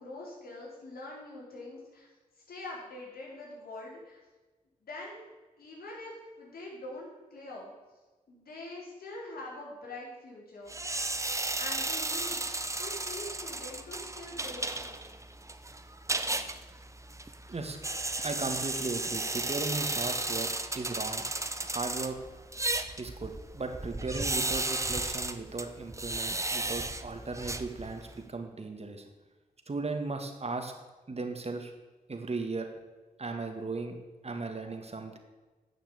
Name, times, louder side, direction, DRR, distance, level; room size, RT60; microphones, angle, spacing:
voice 1, 0.0-2.1 2.5-4.2 4.8-5.3 5.6-7.7 8.3-10.7 11.6-12.5 12.8-15.2, left 2 dB, 80° left, -4 dB, 4.1 m, -44 dB
sound 1, 10.7-28.2, right 2 dB, 20° right, 0.9 m, -34 dB
voice 2, 18.2-20.5 20.7-21.3 21.6-22.2 23.0-29.1 29.7-30.7 31.1-31.7 32.1-32.7 33.2-34.0 34.2-35.2, right 3 dB, 45° right, 5 dB, 1.9 m, -36 dB
9.7 x 6.6 x 8.4 m, 1.2 s
cardioid pair, 50°, 15 cm